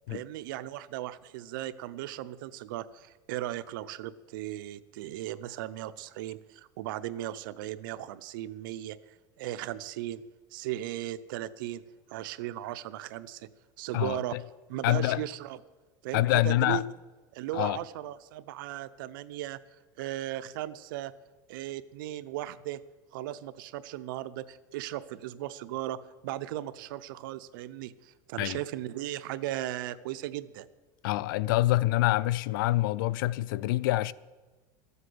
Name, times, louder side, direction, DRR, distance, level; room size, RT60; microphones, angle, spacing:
voice 1, 0.1-9.0 9.4-10.2 10.5-11.8 12.1-13.5 13.8-14.4 14.7-15.6 16.0-16.8 17.3-19.6 20.0-21.1 21.5-22.8 23.1-26.0 26.2-30.7, right 14 dB, 80° right, 0.7 m, -37 dB
voice 2, 13.9-14.4 14.8-15.2 16.1-16.8 17.5-17.8 28.4-28.6 31.0-34.1, left 16 dB, 80° left, 0.5 m, -26 dB
13.5 x 8.2 x 7.8 m
supercardioid pair, 140°, 11 cm